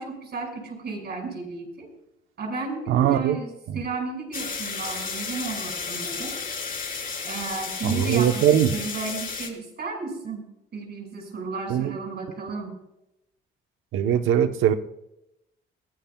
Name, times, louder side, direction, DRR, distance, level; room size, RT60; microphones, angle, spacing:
voice 1, 0.0-1.9 2.4-6.4 7.2-12.8, right 4 dB, 55° right, 1 dB, 6.0 m, -33 dB
voice 2, 2.9-3.4 3.7-3.8 7.8-8.7 11.7-12.0 13.9-14.7, right 10 dB, 85° right, 8 dB, 1.1 m, -21 dB
sound 1, 4.3-9.5, left 5 dB, 45° left, 4.0 m, -33 dB
22.5 x 16.0 x 2.4 m, 0.86 s
cardioid pair, 90°, 20 cm